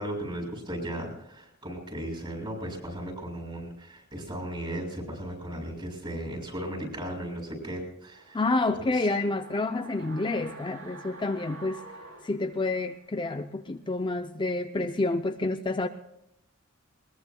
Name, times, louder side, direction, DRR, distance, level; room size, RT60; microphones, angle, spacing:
voice 1, 0.0-8.4 8.9-9.1, right 1 dB, 25° right, 0 dB, 6.4 m, -36 dB
sound 1, 8.0-13.2 13.5-13.6, right 3 dB, 65° right, 3.0 m, -48 dB
voice 2, 8.3-11.8 12.2-15.9, left 2 dB, 25° left, 7 dB, 0.5 m, -28 dB
21.5 x 21.0 x 2.3 m, 0.85 s
head